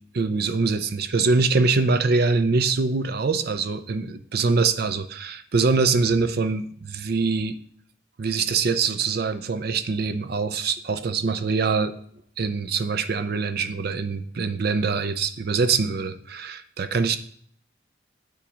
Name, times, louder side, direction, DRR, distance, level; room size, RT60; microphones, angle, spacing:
voice 1, 0.1-7.6 8.2-11.9 12.4-17.2, right 4 dB, 50° right, 11 dB, 0.5 m, -24 dB
8.8 x 3.7 x 4.9 m, 0.63 s
head